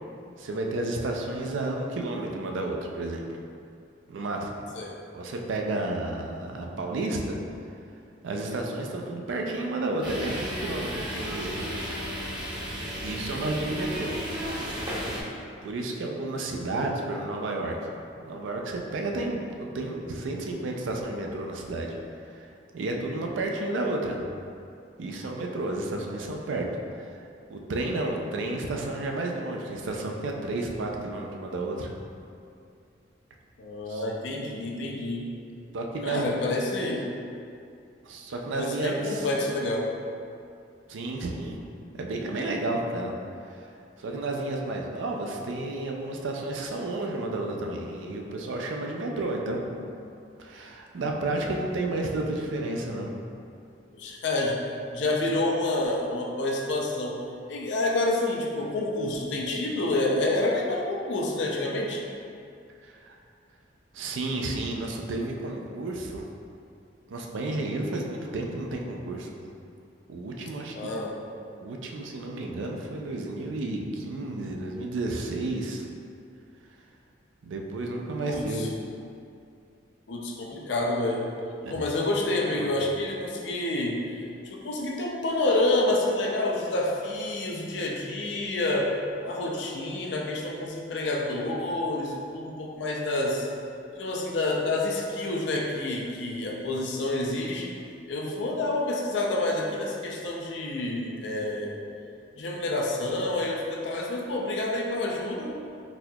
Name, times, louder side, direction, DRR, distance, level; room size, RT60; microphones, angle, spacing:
voice 1, 0.4-3.2 4.1-4.6 5.1-7.4 8.2-11.7 12.9-14.1 15.6-17.8 18.2-22.0 22.3-22.4 22.7-24.2 25.0-26.7 27.0-27.2 27.5-31.9 33.9-34.0 35.7-36.4 38.0-39.3 40.9-41.6 41.9-43.1 43.5-43.7 44.0-49.9 50.4-53.1 62.8-63.2 63.9-66.2 67.1-69.5 70.1-70.9 71.6-75.8 77.4-78.7 81.6-81.9 82.5-82.7, right 2 dB, 90° right, 1 dB, 0.4 m, -31 dB
sound 1, 10.0-15.2, equal, 25° right, 0.6 m, -34 dB
voice 2, 33.6-35.2 36.0-37.0 38.5-39.9 53.9-54.6 54.9-57.1 57.5-62.0 70.7-71.2 78.2-78.7 80.1-81.3 81.7-89.0 89.2-93.5 94.0-97.7 98.1-101.8 102.4-105.5, left 2 dB, 70° left, -1 dB, 0.5 m, -28 dB
4.1 x 2.8 x 2.2 m, 2.5 s
head